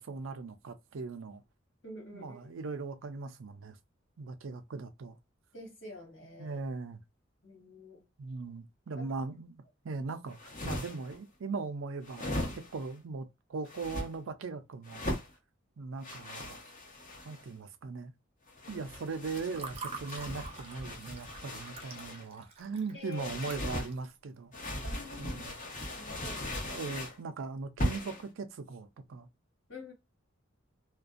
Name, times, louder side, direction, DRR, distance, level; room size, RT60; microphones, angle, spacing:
voice 1, 0.0-1.4 2.1-3.8 4.2-5.2 6.4-7.0 8.2-15.1 15.8-16.6 17.2-18.1 18.7-24.5 25.2-25.5 26.7-29.3, right 4 dB, 90° right, 0.5 m, -39 dB
voice 2, 1.8-2.6 5.5-6.6 7.4-8.0 9.0-9.1 18.7-18.9 22.9-23.3 24.8-25.4 26.0-26.8 29.7-29.9, left 2 dB, 70° left, 1.5 m, -47 dB
sound 1, 10.3-11.2 12.0-12.9 13.7-14.1 14.8-15.3 16.0-17.5 18.5-22.3 23.1-23.9 24.5-27.2 27.8-28.3, left 1 dB, 40° left, 0.9 m, -38 dB
Water / Fill (with liquid), 19.0-24.1, right 4 dB, 30° right, 0.5 m, -46 dB
2.4 x 2.2 x 2.4 m
head